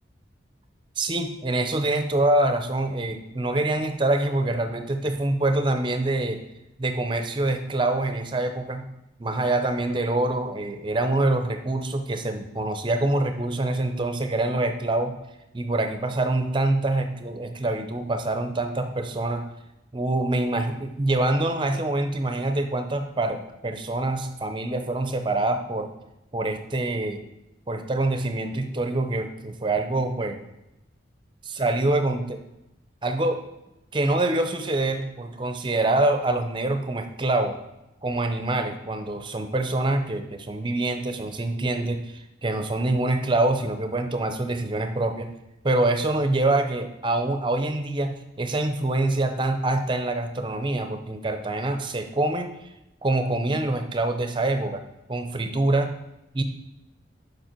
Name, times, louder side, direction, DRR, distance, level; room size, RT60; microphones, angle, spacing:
voice 1, 1.0-6.4 6.8-8.9 9.2-15.2 15.5-19.4 19.9-25.9 26.3-27.2 27.7-30.4 31.4-32.4 33.0-33.4 33.9-37.6 38.0-45.3 45.6-52.6 53.0-54.8 55.1-55.9 56.3-56.4, right 2 dB, 25° right, 7 dB, 0.6 m, -25 dB
7.2 x 5.4 x 4.4 m, 0.91 s
head